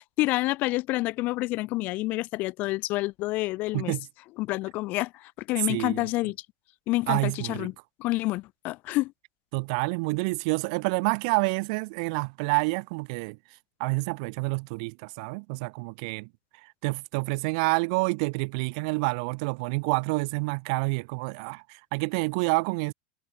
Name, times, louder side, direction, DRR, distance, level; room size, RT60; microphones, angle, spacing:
voice 1, 0.0-3.9 4.4-6.4 6.9-7.7 8.0-9.1, left 20 dB, 45° left, 1.2 m, -28 dB
voice 2, 3.7-4.1 5.7-6.1 7.1-7.7 9.5-13.4 13.8-16.3 16.6-22.9, right 31 dB, 60° right, 3.1 m, -28 dB
supercardioid pair, 150°, 4 cm